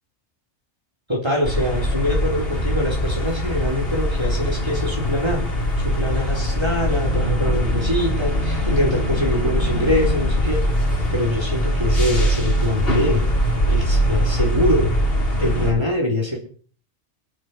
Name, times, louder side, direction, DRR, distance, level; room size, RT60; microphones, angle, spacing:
voice 1, 1.1-5.5 5.8-10.6 11.1-13.2 13.7-14.9 15.4-16.4, left 1 dB, 25° right, -1 dB, 3.9 m, -23 dB
sound 1, 1.4-15.7, equal, 55° left, 3.4 m, -22 dB
21.5 x 9.1 x 4.5 m, 0.43 s
omnidirectional pair, 1.2 m